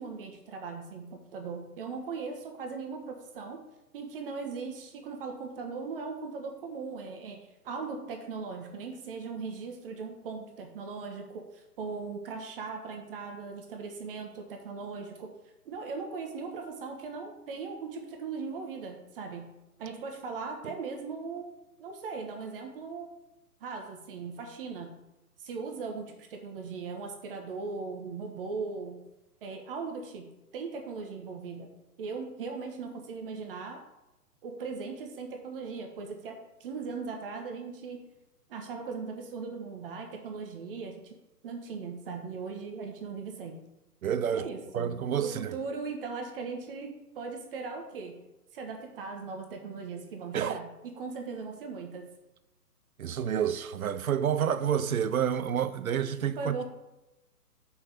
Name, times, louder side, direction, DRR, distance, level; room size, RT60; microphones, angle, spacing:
voice 1, 0.0-3.6 3.9-15.3 15.6-19.5 19.8-21.5 21.8-23.1 23.6-24.9 25.4-29.0 29.4-30.3 30.5-31.7 32.0-33.8 34.4-38.0 38.5-41.2 41.4-43.6 44.3-44.9 45.2-48.1 48.5-52.1 56.3-56.7, right 4 dB, 35° right, 1.4 m, -39 dB
voice 2, 44.0-44.5 44.7-45.5 50.3-50.6 53.0-56.6, right 8 dB, 60° right, 0.8 m, -29 dB
6.3 x 5.6 x 6.8 m
hypercardioid pair, 140°, 48 cm